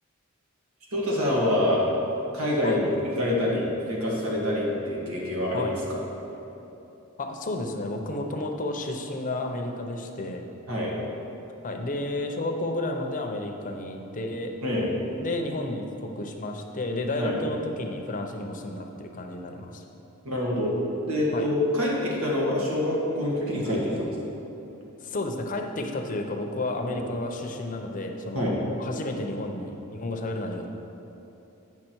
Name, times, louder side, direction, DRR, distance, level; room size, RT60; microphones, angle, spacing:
voice 1, 0.9-1.8 2.3-6.0 10.7-10.9 14.6-14.9 17.1-17.4 20.2-20.7 21.1-24.1 26.9-27.0 28.3-28.5, left 1 dB, 80° right, -4 dB, 1.9 m, -26 dB
voice 2, 7.2-10.5 11.6-14.5 15.2-19.8 21.3-21.5 25.0-28.5 28.8-30.7, left 2 dB, 40° left, 3 dB, 0.6 m, -31 dB
8.6 x 5.9 x 4.5 m, 3.0 s
head